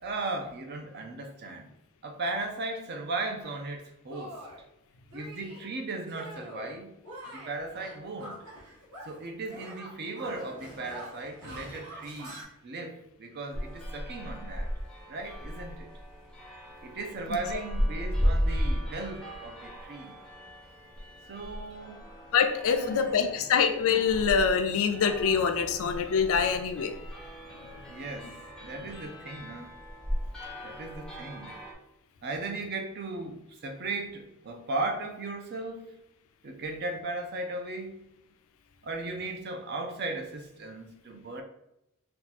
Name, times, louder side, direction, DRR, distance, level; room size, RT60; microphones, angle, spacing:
voice 1, 0.0-1.7 2.0-4.4 5.1-7.0 7.3-8.4 9.0-14.7 15.1-15.9 16.8-20.2 21.3-22.0 22.7-23.3 27.9-29.8 30.6-31.6 32.2-35.9 36.4-38.0 38.8-41.4, right 2 dB, 45° right, 5 dB, 0.5 m, -37 dB
Shatter, 3.4-3.6 4.1-4.6 5.1-5.7 6.1-6.7 7.0-9.2 9.5-12.4, equal, 80° right, 1.2 m, -45 dB
sound 1, 13.5-31.7, equal, 5° left, 0.6 m, -35 dB
voice 2, 22.3-26.9, left 6 dB, 65° left, 6 dB, 0.4 m, -25 dB
2.7 x 2.3 x 4.1 m, 0.86 s
head